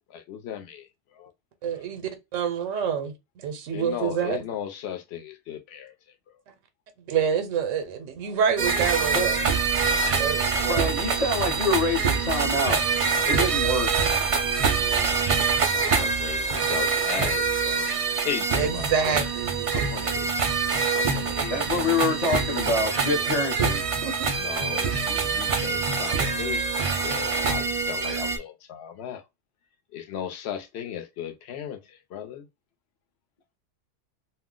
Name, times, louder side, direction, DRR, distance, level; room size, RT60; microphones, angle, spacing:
voice 1, 0.1-1.3 3.7-6.0 15.5-19.3 19.7-20.3 20.9-22.2 24.4-29.2 29.9-32.5, left 9 dB, 65° left, 0.8 m, -36 dB
voice 2, 1.6-4.4 7.1-9.3 10.2-10.9 18.6-19.8 24.0-24.3, right 7 dB, 90° right, 1.0 m, -27 dB
sound 1, 8.6-28.4, right 5 dB, 50° right, 0.4 m, -25 dB
voice 3, 10.7-12.8 13.3-13.9 21.5-23.8, left 2 dB, 40° left, 0.6 m, -26 dB
2.4 x 2.0 x 3.6 m
omnidirectional pair, 1.3 m